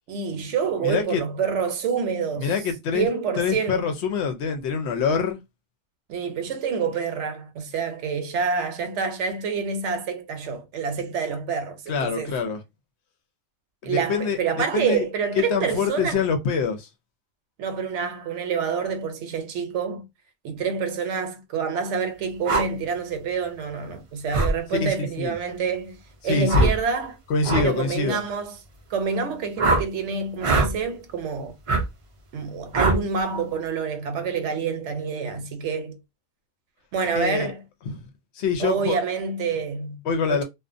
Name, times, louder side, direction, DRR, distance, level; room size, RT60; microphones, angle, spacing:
voice 1, 0.1-2.6 2.9-3.9 6.1-12.4 13.8-16.2 17.6-20.0 20.4-26.0 26.2-27.2 27.5-28.5 28.9-31.6 32.3-36.0 36.9-37.6 38.6-40.0 40.3-40.4, right 5 dB, 75° right, 0.9 m, -27 dB
voice 2, 0.8-1.2 2.4-3.1 3.4-5.4 11.9-12.6 13.8-14.4 14.7-15.0 15.3-16.9 24.8-25.3 26.2-26.7 27.3-28.2 37.1-37.5 37.9-38.0 38.4-39.0 40.1-40.4, left 5 dB, 70° left, 0.8 m, -25 dB
sound 1, 22.4-22.7 24.3-24.5 26.5-26.8 27.4-27.7 29.6-29.8 30.4-30.7 31.7-31.8 32.7-33.0, right 2 dB, 60° right, 0.3 m, -21 dB
2.4 x 2.1 x 2.5 m
omnidirectional pair, 1.3 m